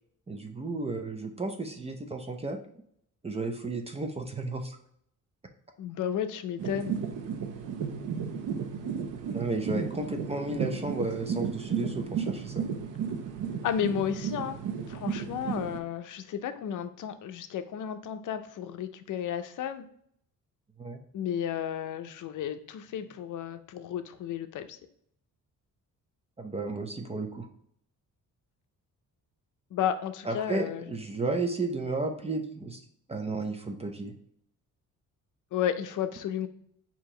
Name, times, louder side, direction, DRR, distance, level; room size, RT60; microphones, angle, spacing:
voice 1, 0.3-2.6 3.2-4.8 9.3-12.7 20.8-21.0 26.4-27.5 30.2-32.8 33.1-34.1, right 3 dB, 20° right, 5 dB, 0.5 m, -33 dB
voice 2, 5.8-7.0 9.7-9.8 13.6-14.6 14.9-19.9 21.1-24.8 29.7-30.9 35.5-36.5, left 9 dB, 65° left, 9 dB, 0.6 m, -33 dB
sound 1, 6.6-15.8, right 7 dB, 65° right, 0.6 m, -34 dB
4.5 x 2.8 x 3.7 m, 0.68 s
cardioid pair, 125°, 33 cm